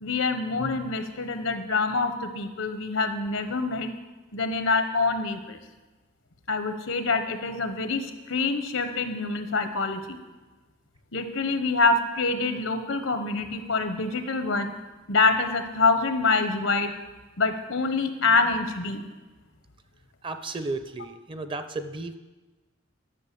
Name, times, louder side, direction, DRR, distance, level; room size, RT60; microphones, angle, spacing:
voice 1, 0.0-3.9 4.3-5.6 6.5-10.2 11.1-14.7 15.1-16.9 17.4-19.0, left 3 dB, 85° left, 8 dB, 1.1 m, -26 dB
voice 2, 20.2-22.2, right 3 dB, 25° right, 10 dB, 0.6 m, -34 dB
11.0 x 6.7 x 6.8 m, 1.2 s
head